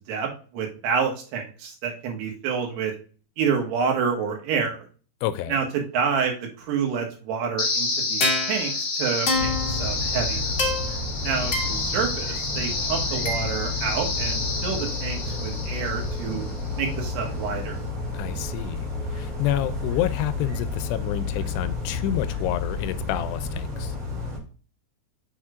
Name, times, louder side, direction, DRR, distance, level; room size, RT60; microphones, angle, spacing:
voice 1, 0.1-2.9 3.4-4.8 5.5-10.5 11.2-16.4 16.8-17.8, right 6 dB, 75° right, 3.3 m, -28 dB
voice 2, 5.2-5.6 18.1-18.8 19.1-24.0, left 12 dB, 85° left, 2.6 m, -28 dB
sound 1, 7.6-16.6, left 3 dB, 55° left, 1.2 m, -28 dB
sound 2, 9.3-24.4, left 3 dB, 30° right, 1.9 m, -31 dB
7.2 x 6.5 x 2.4 m
omnidirectional pair, 4.8 m